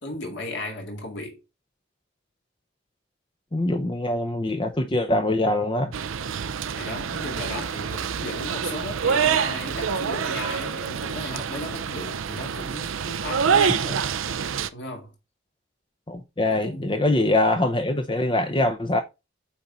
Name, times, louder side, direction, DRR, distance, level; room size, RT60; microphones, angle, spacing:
voice 1, 0.0-1.4 6.7-14.1 14.7-15.1 16.4-16.9, left 1 dB, 60° left, 2.0 m, -35 dB
voice 2, 3.5-5.9 16.1-19.0, left 1 dB, 25° left, 0.7 m, -23 dB
sound 1, 5.9-14.7, right 7 dB, 80° right, 0.6 m, -26 dB
8.4 x 4.0 x 4.3 m
head